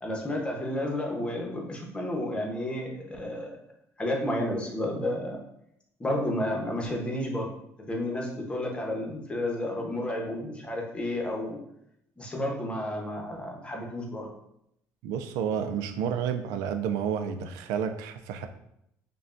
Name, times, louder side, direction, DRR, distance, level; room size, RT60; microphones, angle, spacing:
voice 1, 0.0-3.6 4.0-5.4 6.0-7.5 7.8-11.6 12.2-14.3, left 1 dB, 20° left, 0 dB, 0.9 m, -31 dB
voice 2, 15.0-18.5, right 8 dB, 90° right, 7 dB, 0.4 m, -30 dB
5.2 x 2.3 x 2.5 m, 0.76 s
cardioid pair, 105°, 6 cm